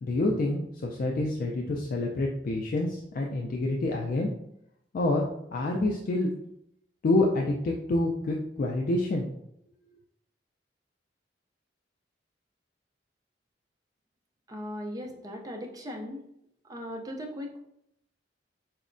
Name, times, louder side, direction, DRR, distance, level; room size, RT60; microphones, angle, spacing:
voice 1, 0.0-4.3 4.9-5.2 5.5-6.3 7.0-9.3, left 2 dB, 50° left, 0 dB, 0.3 m, -27 dB
voice 2, 14.5-16.2 16.6-17.6, equal, 20° right, 1 dB, 0.4 m, -38 dB
4.3 x 2.0 x 2.5 m, 0.76 s
head